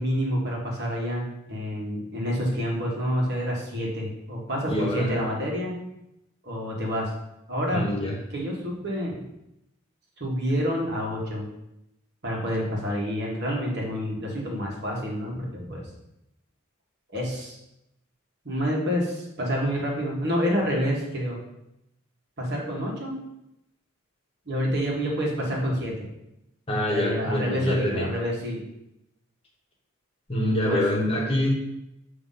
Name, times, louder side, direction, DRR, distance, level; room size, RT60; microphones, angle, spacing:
voice 1, 0.0-5.7 6.4-7.1 7.5-7.8 8.3-9.2 10.2-11.5 12.2-15.9 17.1-17.6 18.5-21.4 22.4-23.2 24.5-26.1 26.9-28.6 30.5-30.8, equal, 55° right, -2 dB, 1.7 m, -28 dB
voice 2, 4.7-5.1 7.7-8.1 26.7-28.1 30.3-31.5, left 1 dB, 30° left, -1 dB, 1.3 m, -25 dB
7.0 x 3.1 x 5.7 m, 0.86 s
head